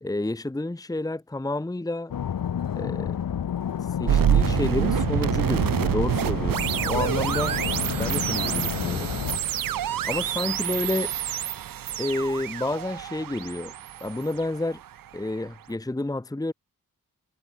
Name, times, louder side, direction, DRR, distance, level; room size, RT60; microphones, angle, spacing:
voice 1, 0.0-2.1 2.7-3.2 4.0-7.6 7.9-9.1 10.0-11.1 12.0-13.7 14.0-14.8 15.1-16.5, left 2 dB, 10° left, 1.1 m, -30 dB
sound 1, 2.1-9.4, left 9 dB, 70° left, 1.1 m, -30 dB
sound 2, 4.1-15.1, right 11 dB, 70° right, 0.6 m, -27 dB
wide cardioid pair, 90°, 35 cm